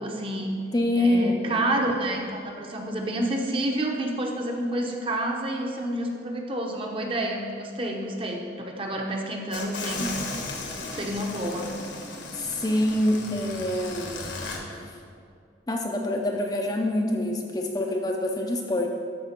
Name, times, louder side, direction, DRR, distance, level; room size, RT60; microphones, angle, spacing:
voice 1, 0.0-0.5 0.9-10.1 10.9-11.7, right 1 dB, 30° right, 1 dB, 0.8 m, -29 dB
voice 2, 0.7-1.6 12.4-14.4 15.7-18.9, left 1 dB, 20° left, 1 dB, 0.5 m, -25 dB
sound 1, 9.5-14.6, left 3 dB, 70° left, 1.3 m, -36 dB
13.0 x 4.9 x 4.4 m, 2.3 s
head